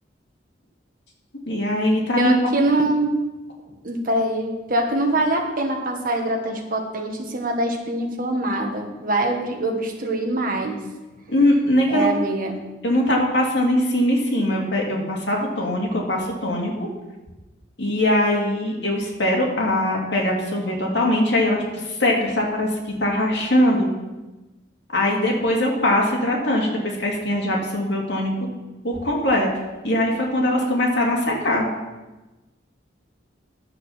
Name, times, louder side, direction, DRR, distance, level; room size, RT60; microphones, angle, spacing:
voice 1, 1.5-2.3 11.3-12.1 12.8-16.9 17.8-23.9 24.9-28.3 28.8-29.5 29.8-31.7, left 1 dB, 65° left, -2 dB, 2.6 m, -21 dB
voice 2, 2.2-3.1 3.8-10.8 11.9-12.6, right 1 dB, 50° right, 2 dB, 1.7 m, -24 dB
11.0 x 7.4 x 5.8 m, 1.1 s
head